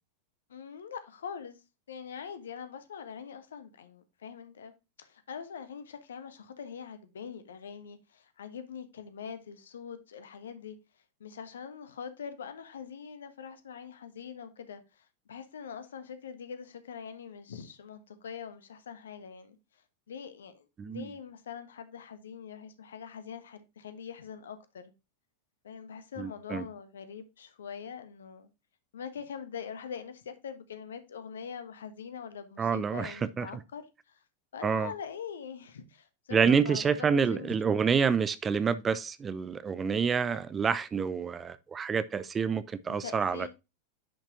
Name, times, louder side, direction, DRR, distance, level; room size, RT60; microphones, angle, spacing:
voice 1, 0.5-1.6 1.9-4.7 5.0-10.8 11.2-19.6 20.1-24.9 25.6-28.5 28.9-34.2 34.5-37.9 42.9-43.5, left 7 dB, 65° left, 1.3 m, -43 dB
voice 2, 26.2-26.7 32.6-33.5 34.6-34.9 36.3-43.5, right 6 dB, 20° right, 0.6 m, -28 dB
10.0 x 5.9 x 2.7 m
figure-of-eight pair, 90°, 0 cm